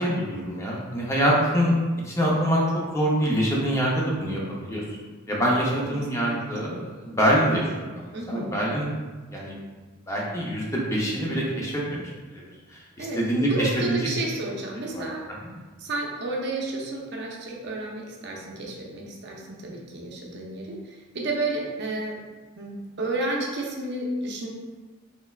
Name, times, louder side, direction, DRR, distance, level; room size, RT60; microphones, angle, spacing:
voice 1, 0.0-1.7 2.0-4.8 5.3-8.9 9.3-9.5 10.1-12.0 12.3-12.4 12.7-14.1 14.9-15.0, equal, 15° left, -4 dB, 0.5 m, -25 dB
voice 2, 5.6-6.5 8.1-8.4 13.0-13.2 13.5-15.2 15.8-22.2 22.6-24.5, right 2 dB, 55° right, -2 dB, 0.6 m, -31 dB
3.2 x 3.2 x 2.3 m, 1.3 s
head